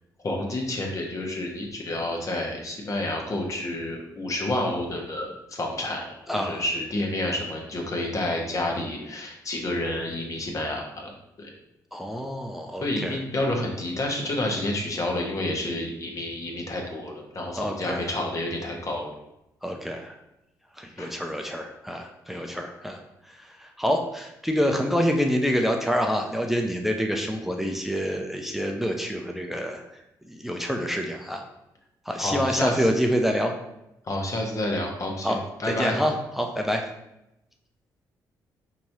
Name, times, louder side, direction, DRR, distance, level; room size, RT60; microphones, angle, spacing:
voice 1, 0.2-11.1 11.4-11.5 12.8-19.1 21.0-21.1 22.3-22.6 32.2-32.9 34.1-35.3 35.6-35.9, left 1 dB, 45° left, 0 dB, 1.1 m, -29 dB
voice 2, 6.3-6.6 11.9-13.2 17.6-18.1 19.6-20.1 20.8-29.8 30.3-31.4 32.1-33.5 35.2-36.9, equal, 5° right, 3 dB, 0.5 m, -27 dB
4.4 x 3.0 x 2.7 m, 0.87 s
supercardioid pair, 60°, 8 cm